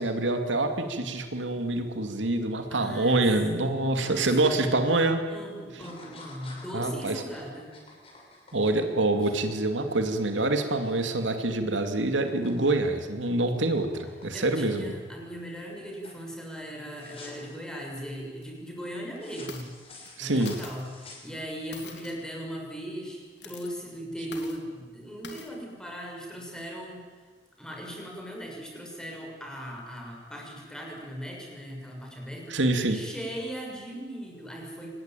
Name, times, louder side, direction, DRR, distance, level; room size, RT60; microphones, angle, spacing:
voice 1, 0.0-5.2 6.7-7.2 8.5-14.9 20.2-20.5 32.5-33.0, right 2 dB, 85° right, 6 dB, 2.6 m, -26 dB
voice 2, 2.7-3.2 3.5-5.0 5.3-7.7 14.3-19.7 19.9-20.9 21.2-27.2 27.6-32.6 32.9-35.0, equal, 5° left, -1 dB, 6.2 m, -39 dB
sound 1, 4.0-4.2 4.6-5.1 5.7-11.8 12.0-12.8 13.1-15.0 15.5-15.8 16.0-16.3 16.9-17.5 19.2-21.7, left 2 dB, 30° left, 6.2 m, -50 dB
sound 2, 17.9-18.0 18.4-18.5 19.3-19.7 20.0-20.1 20.5-20.9 21.7-22.3 23.3-23.7 24.3-24.6 25.2-25.5, left 5 dB, 65° left, 3.6 m, -44 dB
25.5 x 20.0 x 9.2 m, 1.5 s
head